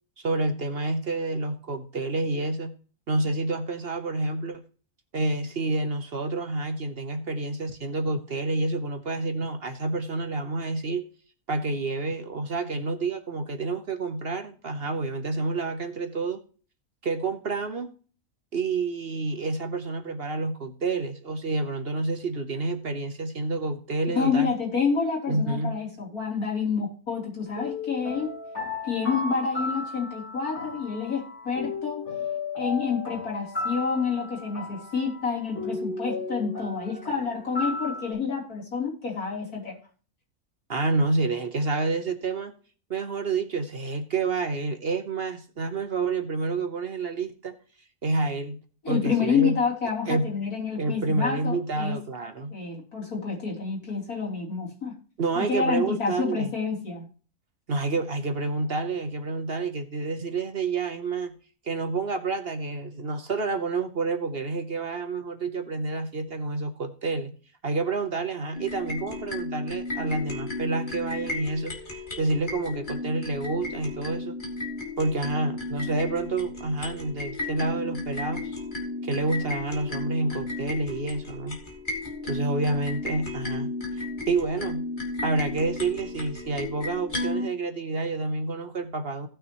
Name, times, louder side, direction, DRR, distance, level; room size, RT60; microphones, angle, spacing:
voice 1, 0.2-2.7 3.1-4.6 5.1-11.1 11.5-16.4 17.0-17.9 18.5-24.5 25.3-25.7 40.7-42.5 42.9-47.6 48.0-48.6 48.9-49.6 50.1-50.3 50.8-52.5 55.2-56.5 57.7-61.3 61.6-67.3 67.6-71.7 72.2-74.3 75.0-78.5 79.0-81.6 82.2-84.8 85.2-89.3, right 3 dB, 45° right, 8 dB, 1.0 m, -29 dB
voice 2, 24.1-28.3 28.8-32.0 32.6-39.8 48.8-52.0 52.5-54.9 55.4-57.1, left 5 dB, 80° left, -2 dB, 4.0 m, -28 dB
sound 1, 27.5-38.1, left 3 dB, 50° left, 6.9 m, -35 dB
sound 2, 68.5-87.5, left 2 dB, 30° left, 2.2 m, -34 dB
17.5 x 6.3 x 3.0 m, 0.38 s
omnidirectional pair, 1.5 m